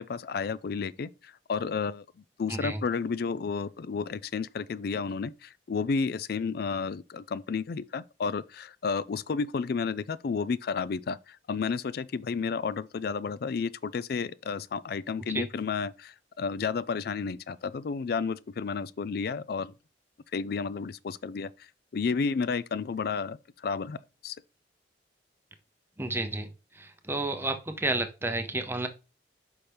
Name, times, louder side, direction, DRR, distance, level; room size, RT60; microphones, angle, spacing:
voice 1, 0.0-2.1 2.4-19.7 20.3-21.5 21.9-24.0 24.2-24.4, left 5 dB, 55° left, 0.3 m, -31 dB
voice 2, 26.0-28.9, right 2 dB, 10° right, 0.6 m, -31 dB
5.9 x 5.6 x 3.3 m
head